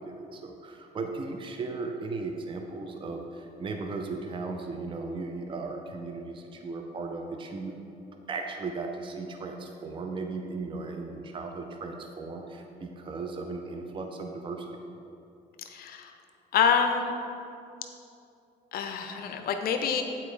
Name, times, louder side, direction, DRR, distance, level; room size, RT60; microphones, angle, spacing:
voice 1, 0.0-7.8 8.3-14.8, right 3 dB, 30° right, 3 dB, 0.6 m, -36 dB
voice 2, 15.7-16.2 16.5-17.1 18.7-20.0, left 7 dB, 65° left, 5 dB, 0.6 m, -26 dB
8.2 x 4.3 x 5.0 m, 2.7 s
cardioid pair, 110°, 17 cm